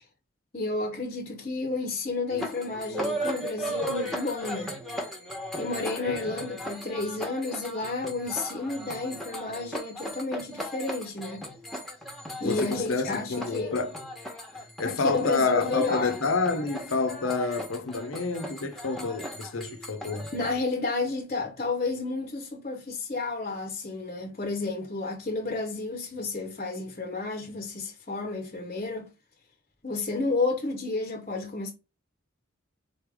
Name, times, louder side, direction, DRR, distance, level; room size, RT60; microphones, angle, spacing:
voice 1, 0.5-4.8 5.6-11.5 12.4-13.8 14.8-16.2 20.3-29.1 29.8-31.7, left 3 dB, 35° left, 0.8 m, -31 dB
sound 1, 2.3-20.5, equal, ahead, 1.0 m, -37 dB
voice 2, 12.4-13.9 14.8-20.3, left 3 dB, 80° left, 0.7 m, -28 dB
4.2 x 3.3 x 3.4 m
head